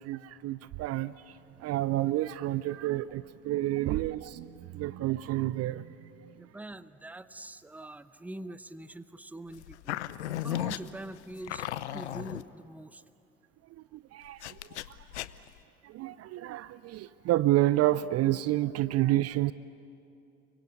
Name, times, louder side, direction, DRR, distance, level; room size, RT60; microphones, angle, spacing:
voice 1, 0.0-6.1 13.9-15.0 15.8-19.5, right 15 dB, 45° right, 17 dB, 0.6 m, -29 dB
voice 2, 6.3-11.7 11.9-13.0, right 1 dB, 5° right, 15 dB, 0.8 m, -44 dB
sound 1, 9.5-12.4 14.4-15.6, left 13 dB, 75° left, 0.7 m, -35 dB
29.5 x 24.0 x 8.2 m, 2.7 s
figure-of-eight pair, 55°, 34 cm